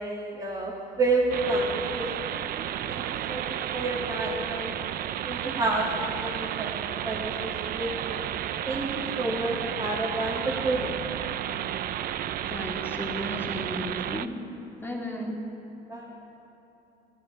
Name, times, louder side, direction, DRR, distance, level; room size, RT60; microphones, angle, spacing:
voice 1, 0.0-3.0 3.3-4.7 5.2-8.2 8.6-10.9 15.9-16.1, right 2 dB, 20° right, -5 dB, 1.8 m, -30 dB
sound 1, 1.3-14.3, right 11 dB, 60° right, 0.5 m, -32 dB
voice 2, 12.5-14.4 14.8-15.4, left 1 dB, 15° left, -3 dB, 2.0 m, -34 dB
15.5 x 12.5 x 4.7 m, 3.0 s
cardioid pair, 110°, 17 cm